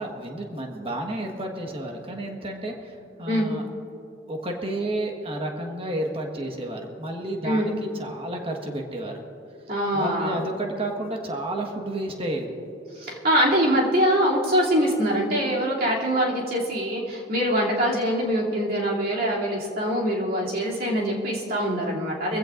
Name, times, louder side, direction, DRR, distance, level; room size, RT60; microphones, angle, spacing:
voice 1, 0.0-3.6 4.3-9.2 9.9-12.5 22.3-22.4, right 1 dB, 30° right, 2 dB, 1.5 m, -31 dB
voice 2, 9.7-10.4 12.9-22.4, equal, 55° right, -4 dB, 2.9 m, -24 dB
23.5 x 16.0 x 2.6 m, 3.0 s
head